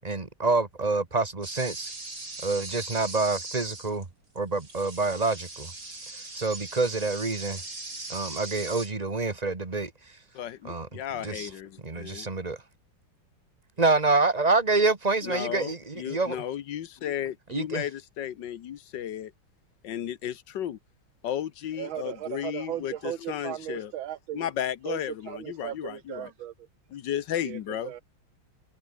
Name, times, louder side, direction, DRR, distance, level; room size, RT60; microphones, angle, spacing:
voice 1, 0.0-1.9 2.4-4.1 4.3-5.7 6.1-7.6 8.1-10.2 10.6-11.5 11.8-12.6 13.8-16.4 17.5-17.8, right 3 dB, 20° right, 1.6 m, -27 dB
sound 1, 1.4-4.0 4.4-8.9, right 3 dB, 40° right, 5.1 m, -40 dB
voice 2, 10.3-12.3 15.2-19.3 19.8-20.8 21.2-23.9 24.3-26.3 26.9-27.9, left 10 dB, 65° left, 1.6 m, -34 dB
voice 3, 21.8-24.5 24.9-25.0 25.3-26.5 27.4-27.6 27.8-28.0, right 12 dB, 75° right, 1.6 m, -36 dB
omnidirectional pair, 2.3 m